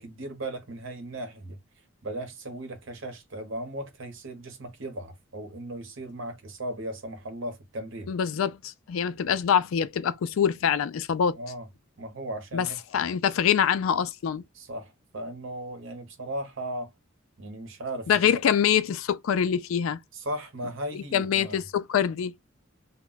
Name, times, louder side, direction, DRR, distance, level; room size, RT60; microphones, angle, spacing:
voice 1, 0.0-1.6 2.0-8.1 11.4-11.7 12.0-12.8 14.5-16.9 17.4-18.4 20.1-21.6, right 1 dB, 65° right, 0.9 m, -37 dB
voice 2, 8.1-11.4 12.5-12.7 12.9-14.4 18.1-20.0 20.9-22.4, left 8 dB, 75° left, 0.3 m, -25 dB
2.2 x 2.1 x 3.7 m
head